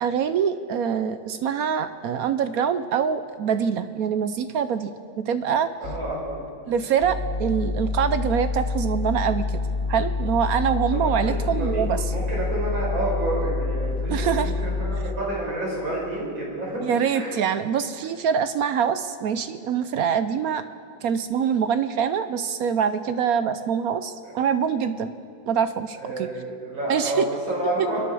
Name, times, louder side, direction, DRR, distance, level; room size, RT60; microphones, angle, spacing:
voice 1, 0.0-4.9 5.2-5.7 6.7-9.6 9.9-12.1 14.1-14.5 16.8-20.6 21.0-25.1 25.5-26.3 26.9-27.3 27.8-27.9, right 7 dB, 70° right, 11 dB, 0.9 m, -24 dB
sound 1, 5.8-6.0 7.0-15.0, left 3 dB, 40° left, 2.9 m, -27 dB
voice 2, 5.8-6.5 10.9-17.3 24.2-24.3 26.0-28.0, right 1 dB, 85° right, -4 dB, 5.7 m, -29 dB
28.5 x 10.5 x 4.7 m, 2.4 s
omnidirectional pair, 2.1 m